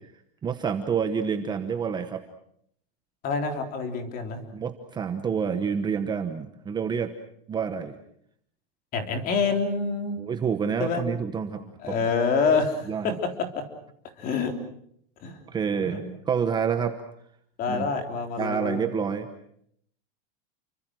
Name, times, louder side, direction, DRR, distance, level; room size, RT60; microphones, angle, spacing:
voice 1, 0.4-2.2 4.5-7.1 7.5-8.0 10.2-11.9 12.9-13.2 15.5-16.9 17.7-17.9 18.4-19.3, right 6 dB, 15° right, 7 dB, 1.1 m, -28 dB
voice 2, 3.2-4.4 8.9-10.2 10.8-11.0 11.8-13.1 13.6-13.7 14.2-14.5 15.2-15.4 15.8-16.1 17.6-18.9, left 5 dB, 30° left, 5 dB, 3.7 m, -27 dB
29.5 x 24.0 x 6.3 m, 0.69 s
supercardioid pair, 170°, 29 cm